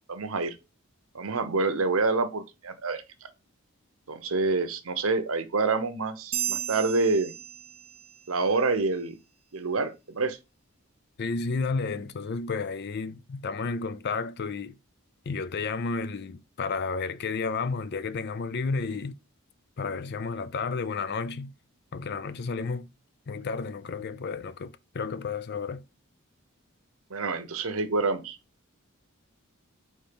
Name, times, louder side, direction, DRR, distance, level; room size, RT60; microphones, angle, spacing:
voice 1, 0.1-0.5 1.1-3.3 4.1-7.4 8.3-9.2 9.5-10.4 27.1-28.4, right 3 dB, 75° right, 0.9 m, -27 dB
sound 1, 6.3-8.2, right 11 dB, 30° right, 0.4 m, -34 dB
voice 2, 11.2-14.8 15.3-19.2 19.8-21.5 21.9-22.9 23.3-25.8, left 4 dB, 50° left, 0.5 m, -32 dB
4.4 x 4.4 x 5.2 m
head